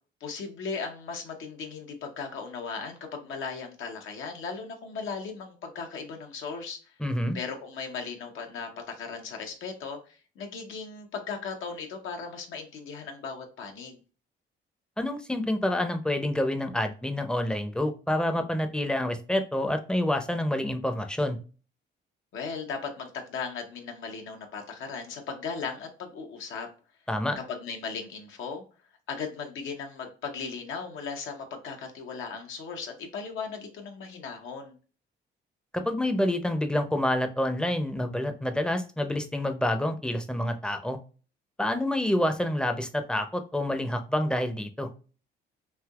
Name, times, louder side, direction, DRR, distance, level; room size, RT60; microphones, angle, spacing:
voice 1, 0.2-6.8 7.3-14.0 22.3-26.7 27.5-28.6 29.1-34.8, left 5 dB, 80° left, 3 dB, 0.8 m, -37 dB
voice 2, 7.0-7.4 15.0-21.4 27.1-27.4 35.7-41.0 41.6-44.9, left 1 dB, 5° left, 7 dB, 0.5 m, -28 dB
3.4 x 2.7 x 2.3 m, 0.36 s
cardioid pair, 90°, 20 cm